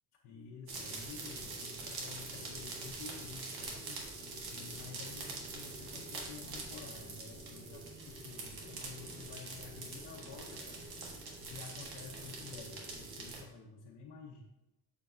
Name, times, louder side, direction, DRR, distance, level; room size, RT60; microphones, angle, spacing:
voice 1, 0.2-10.8 11.4-14.4, left 5 dB, 70° left, -3 dB, 1.0 m, -51 dB
sound 1, 0.7-13.4, right 3 dB, 65° right, 1.6 m, -44 dB
6.9 x 6.8 x 2.7 m, 0.92 s
cardioid pair, 145°, 41 cm